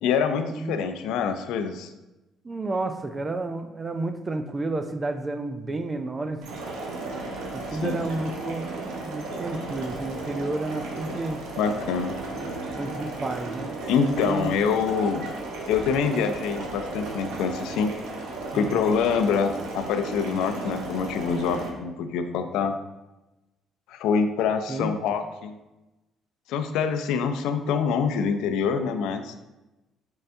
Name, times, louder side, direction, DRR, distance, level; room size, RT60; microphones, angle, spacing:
voice 1, 0.0-1.9 7.7-8.0 11.6-12.2 13.9-15.3 15.7-17.9 18.5-22.8 23.9-25.6 26.5-29.3, left 6 dB, 85° left, 8 dB, 0.4 m, -25 dB
voice 2, 2.4-6.5 7.5-11.4 12.3-13.8 14.1-14.5 18.5-18.8 24.7-25.0, right 2 dB, 25° right, 8 dB, 0.4 m, -31 dB
sound 1, 6.4-21.7, right 2 dB, 85° right, 0.9 m, -35 dB
5.4 x 3.3 x 2.6 m, 1.0 s
cardioid pair, 115°, 0 cm